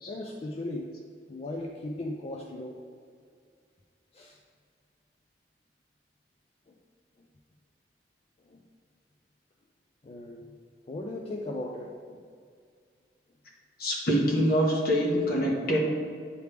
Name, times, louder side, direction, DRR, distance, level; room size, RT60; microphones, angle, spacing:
voice 1, 0.1-0.9 1.3-2.8 4.1-4.4 6.7-6.8 8.5-8.6 10.0-10.5 10.9-12.2, left 1 dB, 35° left, 0 dB, 0.4 m, -37 dB
voice 2, 13.8-15.8, equal, 60° left, -2 dB, 1.2 m, -25 dB
9.2 x 3.3 x 3.3 m, 2.1 s
head